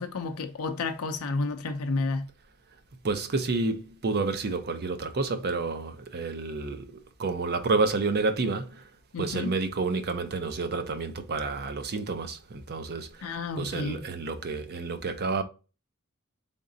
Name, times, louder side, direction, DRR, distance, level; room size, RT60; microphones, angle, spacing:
voice 1, 0.0-2.3 9.1-9.6 13.2-14.0, left 3 dB, 75° left, 0.5 m, -31 dB
voice 2, 3.0-6.9 7.2-8.9 9.2-15.4, right 3 dB, 50° right, 0.6 m, -29 dB
3.9 x 3.6 x 2.6 m
head